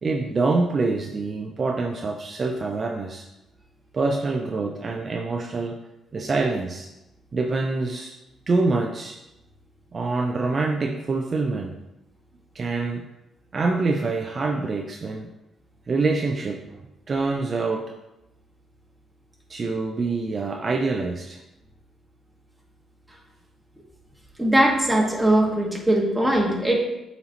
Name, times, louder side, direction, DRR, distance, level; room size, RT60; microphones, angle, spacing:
voice 1, 0.0-3.3 3.9-5.8 6.1-6.9 7.3-8.2 8.5-9.2 9.9-11.8 12.5-13.0 13.5-15.3 15.9-16.8 17.1-17.9 19.5-21.4, right 3 dB, 40° right, 2 dB, 0.5 m, -25 dB
voice 2, 24.4-26.8, right 1 dB, 5° right, -2 dB, 1.5 m, -20 dB
8.2 x 4.1 x 2.9 m, 0.94 s
cardioid pair, 90°, 0 cm